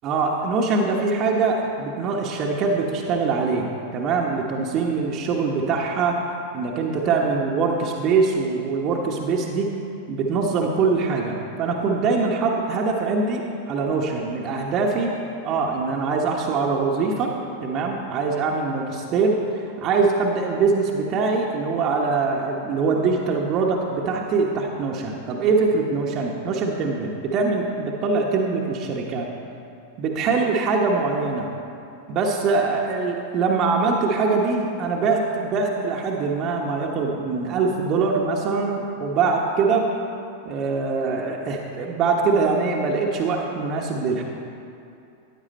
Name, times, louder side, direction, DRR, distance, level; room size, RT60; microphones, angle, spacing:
voice 1, 0.0-6.2 6.5-9.7 10.1-15.2 15.4-29.3 30.0-31.5 32.1-39.9 40.4-44.2, right 4 dB, 35° right, -1 dB, 1.2 m, -23 dB
15.0 x 9.5 x 4.3 m, 2.6 s
figure-of-eight pair, 90°, 0 cm